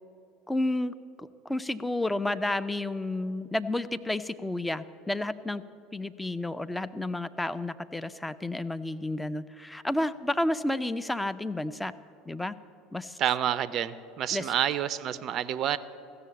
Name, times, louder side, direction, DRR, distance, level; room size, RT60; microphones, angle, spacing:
voice 1, 0.5-5.6 5.9-11.9 12.3-12.5 12.9-13.2 14.3-14.5, left 1 dB, 10° left, 12 dB, 0.5 m, -31 dB
voice 2, 13.2-15.8, right 10 dB, 45° right, 15 dB, 0.4 m, -28 dB
15.0 x 6.9 x 8.6 m, 2.9 s
figure-of-eight pair, 70°, 0 cm